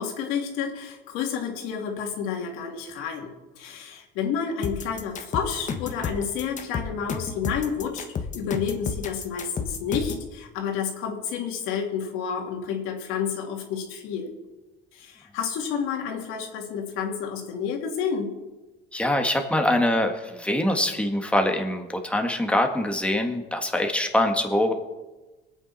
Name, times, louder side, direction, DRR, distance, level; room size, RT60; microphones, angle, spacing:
voice 1, 0.0-3.3 3.6-8.0 8.3-14.3 14.9-18.4, left 7 dB, 90° left, 2 dB, 2.6 m, -30 dB
sound 1, 4.6-10.3, left 6 dB, 35° left, 1.4 m, -31 dB
voice 2, 18.9-24.7, left 1 dB, 5° left, 3 dB, 1.7 m, -24 dB
24.0 x 8.9 x 4.2 m, 1.2 s
cardioid pair, 130°, 21 cm